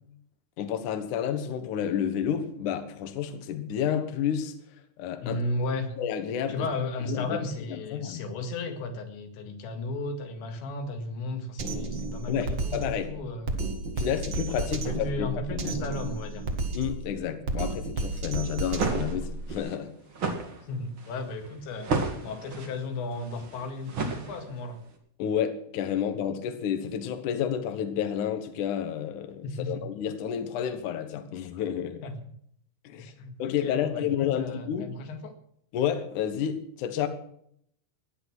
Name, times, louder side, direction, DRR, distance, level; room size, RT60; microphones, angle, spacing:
voice 1, 0.6-4.5 5.0-5.4 6.0-6.7 7.1-7.4 7.7-8.2 12.3-13.1 14.0-15.6 16.7-19.9 25.2-32.0 32.8-33.1 33.4-34.9 35.7-37.1, left 9 dB, 60° left, 8 dB, 2.3 m, -30 dB
voice 2, 5.2-5.9 6.5-13.6 14.7-16.5 20.7-24.8 29.4-29.8 32.0-32.1 32.9-35.3, left 2 dB, 90° left, 5 dB, 4.1 m, -34 dB
Drum kit, 11.6-19.6, right 3 dB, 90° right, 1.0 m, -32 dB
sound 1, 18.5-24.8, right 3 dB, 45° right, 1.8 m, -33 dB
16.5 x 10.5 x 6.2 m, 0.68 s
omnidirectional pair, 5.0 m